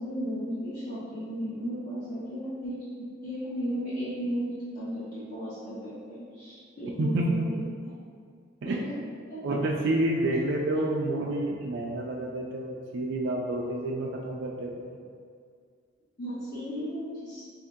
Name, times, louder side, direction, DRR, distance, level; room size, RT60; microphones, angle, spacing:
voice 1, 0.0-7.7 8.8-8.9 9.3-9.4 16.2-17.5, equal, 45° left, -14 dB, 0.9 m, -35 dB
voice 2, 7.0-7.5 8.6-8.8 9.4-15.0, right 1 dB, 60° right, -2 dB, 0.4 m, -29 dB
3.4 x 2.7 x 3.6 m, 2.1 s
head